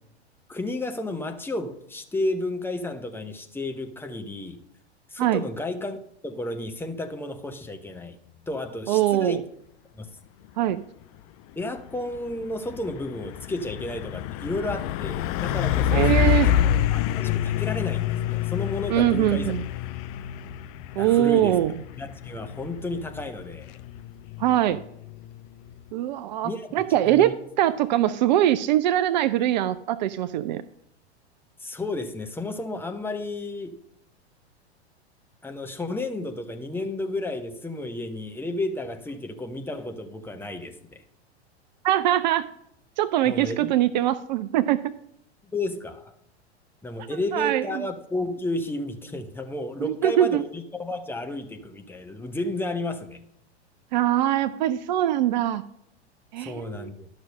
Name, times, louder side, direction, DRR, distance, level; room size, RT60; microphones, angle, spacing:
voice 1, 0.5-4.6 5.1-8.2 8.5-9.5 10.0-10.1 11.6-19.5 21.0-21.6 22.0-23.7 26.4-26.7 27.0-27.3 31.6-33.8 35.4-41.0 43.2-43.7 45.5-46.2 46.8-53.2 56.4-57.1, left 2 dB, 5° left, 5 dB, 0.9 m, -32 dB
voice 2, 8.9-9.4 10.6-10.8 15.9-16.5 18.9-19.6 21.0-21.7 24.4-24.8 25.9-30.6 41.8-42.5 43.0-44.9 47.3-47.7 49.8-50.4 53.9-55.6 56.3-56.9, right 12 dB, 45° right, 13 dB, 0.5 m, -22 dB
Truck, 11.6-25.9, left 10 dB, 35° left, 0.5 m, -27 dB
12.0 x 6.1 x 5.4 m, 0.73 s
figure-of-eight pair, 95°, 33 cm